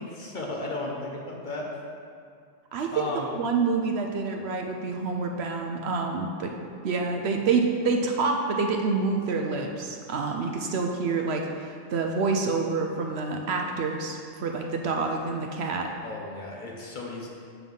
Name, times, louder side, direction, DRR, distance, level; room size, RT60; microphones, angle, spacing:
voice 1, 0.0-1.7 2.9-3.3 16.0-17.3, left 2 dB, 45° left, -2 dB, 0.9 m, -34 dB
voice 2, 2.7-3.1 3.4-6.5 6.8-15.9, right 4 dB, 65° right, 2 dB, 0.8 m, -27 dB
7.6 x 3.5 x 5.4 m, 2.4 s
omnidirectional pair, 1.3 m